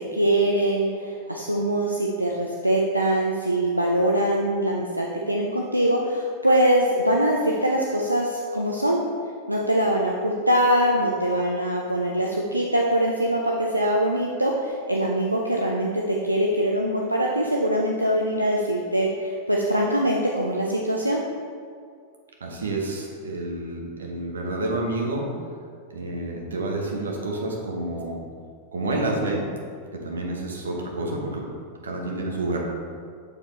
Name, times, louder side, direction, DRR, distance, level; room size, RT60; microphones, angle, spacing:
voice 1, 0.0-9.0 9.5-21.2, right 1 dB, 90° right, -1 dB, 0.4 m, -23 dB
voice 2, 22.4-25.3 25.9-28.2 28.7-29.5 29.9-31.5 31.8-32.6, right 2 dB, 70° right, 0 dB, 0.9 m, -29 dB
6.8 x 4.5 x 3.1 m, 2.2 s
figure-of-eight pair, 90°, 0 cm